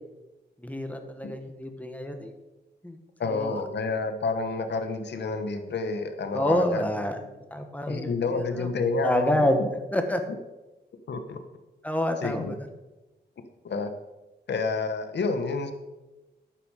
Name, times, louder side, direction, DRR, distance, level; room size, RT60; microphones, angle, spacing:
voice 1, 0.6-2.3 2.8-3.0 3.3-3.6 6.3-7.2 7.5-8.7 9.0-10.2 11.8-12.6, left 1 dB, 10° left, 5 dB, 1.8 m, -27 dB
voice 2, 3.2-6.8 7.9-9.7 11.1-11.4 12.2-12.5 13.6-13.9 14.5-15.7, left 4 dB, 70° left, 8 dB, 1.4 m, -29 dB
11.5 x 9.3 x 5.0 m, 1.1 s
cardioid pair, 80°, 18 cm